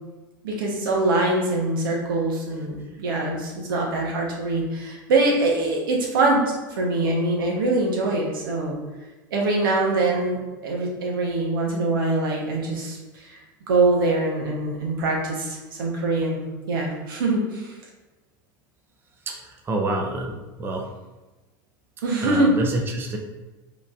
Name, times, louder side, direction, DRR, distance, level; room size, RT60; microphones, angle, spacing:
voice 1, 0.4-6.4 6.8-8.8 9.3-13.4 13.7-16.4 16.7-17.7 22.0-22.5, right 2 dB, 85° right, -1 dB, 1.2 m, -23 dB
voice 2, 19.7-20.9 22.2-23.2, right 2 dB, 20° right, 2 dB, 0.6 m, -27 dB
5.0 x 3.3 x 2.6 m, 1.2 s
supercardioid pair, 110°, 11 cm